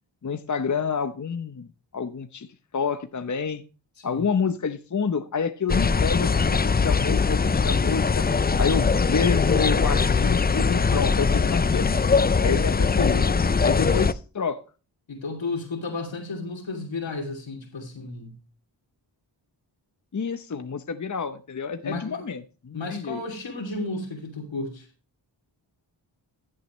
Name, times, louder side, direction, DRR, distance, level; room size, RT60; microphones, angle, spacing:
voice 1, 0.2-2.5 2.7-3.6 4.0-8.3 8.6-11.9 12.4-14.6 20.1-23.2, left 5 dB, 40° left, 0.8 m, -28 dB
sound 1, 5.7-14.1, left 5 dB, 20° left, 0.5 m, -21 dB
voice 2, 13.8-14.1 15.1-18.3 21.8-22.2 22.7-24.9, left 3 dB, 80° left, 2.9 m, -33 dB
14.5 x 7.7 x 3.1 m
cardioid pair, 50°, 45 cm